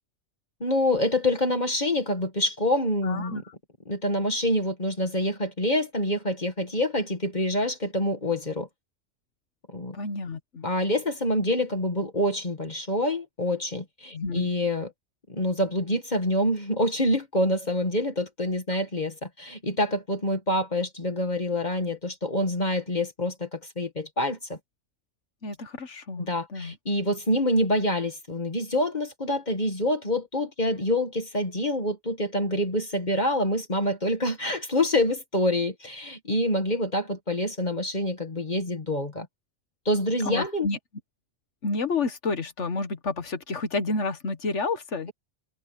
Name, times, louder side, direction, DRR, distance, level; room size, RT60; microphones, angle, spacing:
voice 1, 0.6-3.4 3.9-8.7 9.7-10.0 10.6-14.9 15.3-24.6 26.2-39.3 39.9-40.7, left 1 dB, 40° left, 2.1 m, -26 dB
voice 2, 3.0-3.6 9.9-10.7 14.1-14.5 25.4-26.8 40.2-40.8 41.6-45.1, left 3 dB, 75° left, 1.8 m, -30 dB
omnidirectional pair, 1.2 m